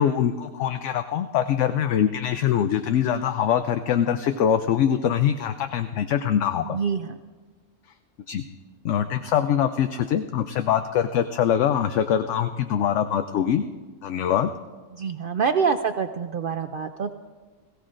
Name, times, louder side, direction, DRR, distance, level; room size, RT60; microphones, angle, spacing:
voice 1, 0.0-6.8 8.3-8.4 8.8-13.6 14.0-14.5, left 9 dB, 70° left, 9 dB, 0.9 m, -23 dB
voice 2, 6.7-7.1 14.9-17.1, right 6 dB, 65° right, 8 dB, 0.5 m, -26 dB
21.0 x 15.5 x 2.5 m, 1.3 s
omnidirectional pair, 1.4 m